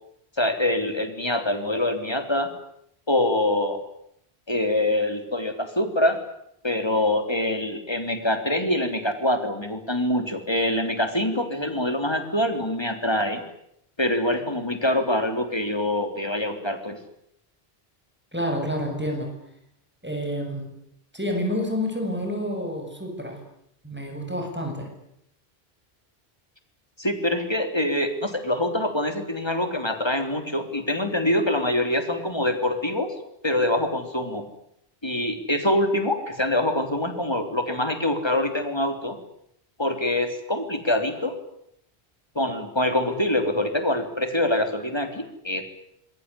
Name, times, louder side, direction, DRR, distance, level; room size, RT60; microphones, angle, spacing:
voice 1, 0.4-2.5 3.1-3.8 4.5-6.2 6.6-13.4 14.0-17.0 27.0-33.1 33.4-34.5 35.0-39.2 39.8-41.4 42.4-45.6, left 1 dB, 25° left, 7 dB, 3.6 m, -25 dB
voice 2, 18.3-19.3 20.0-20.7 21.1-23.4 23.8-24.9, equal, 10° right, 3 dB, 7.5 m, -29 dB
26.5 x 22.0 x 9.9 m, 0.75 s
omnidirectional pair, 1.1 m